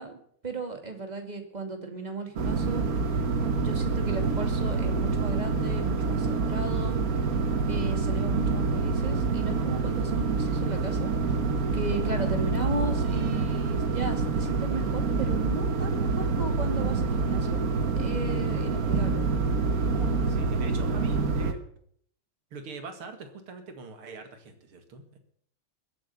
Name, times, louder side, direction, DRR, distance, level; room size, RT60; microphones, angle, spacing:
voice 1, 0.0-3.2 3.6-7.0 7.7-11.3 11.7-17.6 18.0-19.3, right 3 dB, 20° right, 5 dB, 2.4 m, -35 dB
sound 1, 2.4-21.5, right 4 dB, 50° right, 1.5 m, -27 dB
voice 2, 20.3-21.6 22.5-25.2, right 4 dB, 80° right, 7 dB, 2.9 m, -42 dB
21.0 x 8.7 x 6.9 m, 0.63 s
omnidirectional pair, 2.3 m